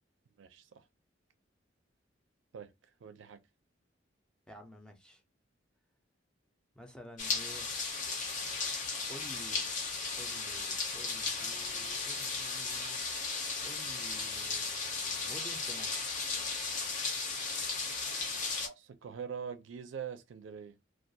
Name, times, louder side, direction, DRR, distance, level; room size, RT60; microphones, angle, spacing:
voice 1, 0.4-0.8 2.5-2.7 3.0-3.4 18.6-20.7, right 7 dB, 80° right, 0.4 m, -43 dB
voice 2, 4.5-5.2 6.8-7.7 9.1-9.7 10.2-13.0 13.5-16.1, equal, 5° left, 0.4 m, -51 dB
sound 1, 7.2-18.7, left 4 dB, 45° left, 0.6 m, -35 dB
2.3 x 2.2 x 2.6 m
head